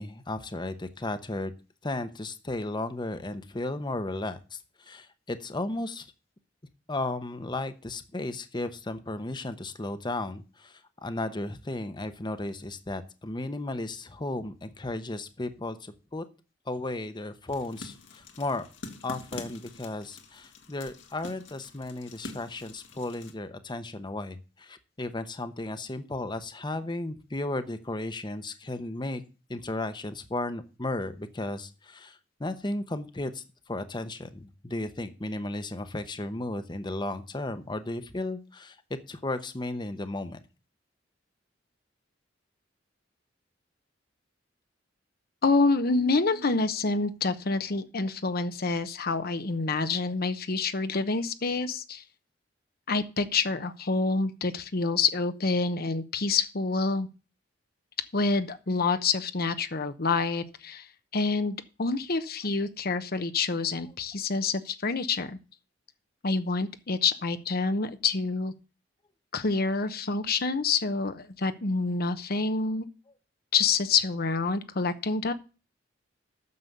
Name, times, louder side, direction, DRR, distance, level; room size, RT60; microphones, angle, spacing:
voice 1, 0.0-1.5 1.8-4.6 4.9-6.0 6.9-10.7 11.0-16.2 16.7-18.7 19.0-29.2 29.5-33.4 33.7-38.8 39.1-40.4, left 2 dB, 25° left, 10 dB, 0.9 m, -34 dB
sound 1, 17.5-23.3, left 2 dB, 75° left, 1.9 m, -45 dB
voice 2, 45.4-52.0 52.9-57.1 58.1-60.9 61.1-65.4 66.2-68.5 69.3-72.9 73.5-75.3, left 4 dB, 55° left, 10 dB, 0.9 m, -27 dB
9.5 x 6.8 x 6.8 m, 0.33 s
head